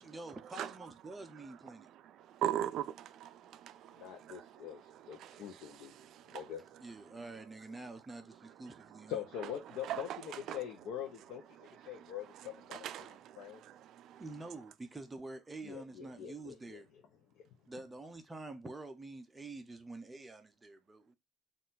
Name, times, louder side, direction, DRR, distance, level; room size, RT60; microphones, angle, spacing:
voice 1, 0.0-1.9 6.8-9.2 14.2-16.9 17.7-21.1, right 2 dB, 15° right, 0.6 m, -47 dB
voice 2, 2.0-4.5 4.9-6.4 9.8-10.2 10.5-10.6 11.9-12.0 12.7-14.2, right 11 dB, 60° right, 0.3 m, -41 dB
voice 3, 4.0-5.9 6.3-6.6 9.1-13.6 15.6-16.8, left 9 dB, 75° left, 0.7 m, -44 dB
4.4 x 2.5 x 3.9 m
cardioid pair, 165°, 0 cm